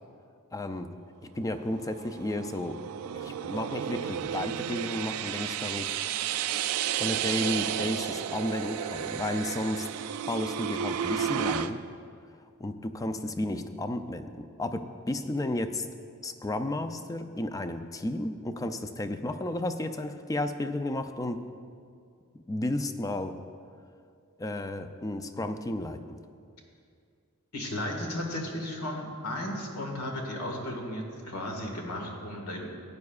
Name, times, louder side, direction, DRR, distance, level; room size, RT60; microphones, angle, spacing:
voice 1, 0.5-0.9 1.3-2.8 3.1-6.0 7.0-9.9 10.3-11.8 12.6-15.9 16.2-21.5 22.5-23.4 24.4-26.2, left 1 dB, 15° left, 9 dB, 0.4 m, -33 dB
sound 1, 1.6-11.7, right 9 dB, 70° right, 0.3 m, -32 dB
voice 2, 27.5-32.7, left 1 dB, 80° left, 1 dB, 1.7 m, -34 dB
15.5 x 9.5 x 2.4 m, 2.3 s
head